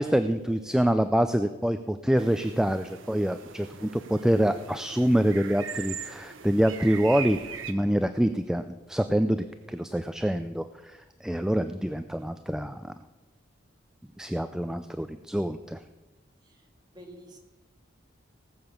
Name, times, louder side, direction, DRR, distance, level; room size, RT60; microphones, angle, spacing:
voice 1, 0.0-7.4 7.7-12.9 14.2-15.8, equal, 5° right, 9 dB, 0.3 m, -26 dB
sound 1, 2.2-7.7, right 7 dB, 85° right, 1.0 m, -40 dB
voice 2, 16.9-17.4, right 1 dB, 20° right, 1 dB, 2.0 m, -48 dB
18.0 x 6.9 x 7.2 m, 1.1 s
head